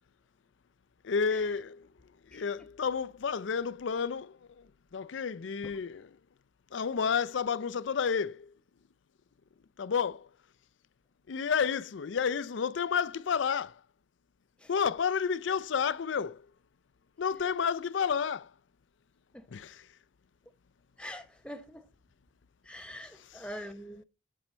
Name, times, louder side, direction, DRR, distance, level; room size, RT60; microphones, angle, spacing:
voice 1, 1.0-1.9 2.2-6.2 6.7-8.5 9.8-10.3 11.3-13.8 14.7-16.5 17.2-18.5 19.5-19.9 23.2-23.5, left 6 dB, 80° left, 0.5 m, -31 dB
voice 2, 21.0-21.9 22.6-24.0, equal, 5° left, 1.1 m, -44 dB
11.0 x 4.4 x 5.5 m
head